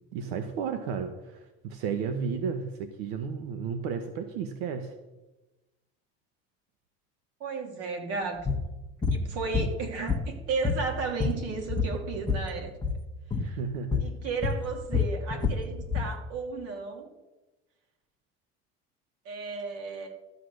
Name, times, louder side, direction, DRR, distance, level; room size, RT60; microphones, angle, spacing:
voice 1, 0.1-4.9 13.4-14.0, right 6 dB, 90° right, 7 dB, 1.1 m, -33 dB
voice 2, 7.4-8.4 9.1-12.7 13.4-13.6 14.0-17.1 19.2-20.1, right 4 dB, 55° right, 2 dB, 3.1 m, -34 dB
sound 1, 8.5-8.6 9.0-9.2 9.5-10.4 10.6-12.5 12.8-13.0 13.3-13.5 13.9-14.1 14.4-16.1, left 5 dB, 15° left, 1.2 m, -27 dB
13.0 x 8.4 x 6.4 m, 1.1 s
cardioid pair, 135°, 30 cm